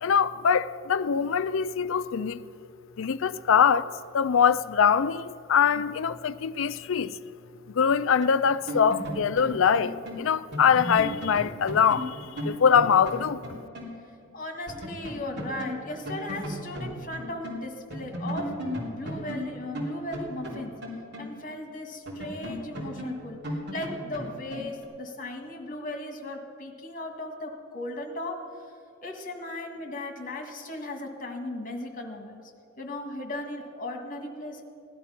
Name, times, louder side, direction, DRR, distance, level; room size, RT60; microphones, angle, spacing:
voice 1, 0.0-2.4 3.0-3.9 4.1-7.2 7.7-13.4, left 7 dB, 65° left, 0.4 m, -23 dB
sound 1, 8.2-14.0 14.2-14.3 14.7-17.6 17.9-21.6 22.1-24.8, equal, 55° right, 3.1 m, -36 dB
voice 2, 14.3-18.6 18.9-20.8 21.2-28.5 29.0-32.4 32.8-34.6, left 1 dB, 45° left, 1.7 m, -37 dB
16.5 x 11.0 x 5.7 m
head